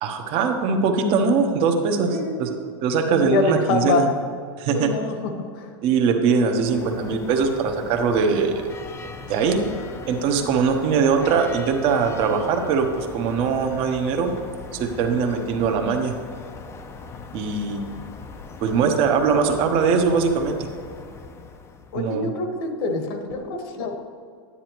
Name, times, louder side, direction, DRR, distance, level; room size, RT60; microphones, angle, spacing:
voice 1, 0.0-2.5 2.8-4.1 4.6-4.9 5.8-8.7 9.3-9.6 10.1-14.3 14.7-16.2 17.3-17.8 18.6-20.6 21.9-22.3, right 5 dB, 45° right, 5 dB, 1.0 m, -21 dB
voice 2, 2.1-2.5 3.1-4.1 4.7-5.7 21.9-24.0, left 3 dB, 65° left, 5 dB, 1.3 m, -25 dB
sound 1, 6.6-22.1, left 4 dB, 20° left, 0.6 m, -39 dB
9.8 x 9.8 x 3.0 m, 2.2 s
supercardioid pair, 140°, 13 cm